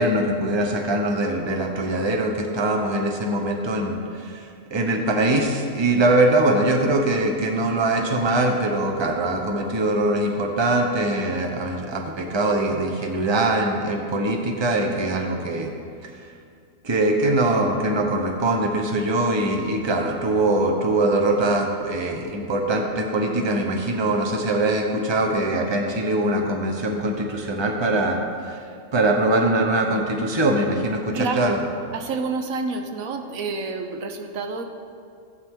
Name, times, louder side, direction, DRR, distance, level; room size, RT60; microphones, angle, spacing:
voice 1, 0.0-15.7 16.2-16.3 16.8-28.2 28.4-28.6 28.9-31.6, right 2 dB, 20° right, 2 dB, 0.9 m, -22 dB
voice 2, 31.1-31.6 31.9-34.6, right 4 dB, 80° right, 6 dB, 1.2 m, -28 dB
15.0 x 8.2 x 3.8 m, 2.3 s
omnidirectional pair, 1.4 m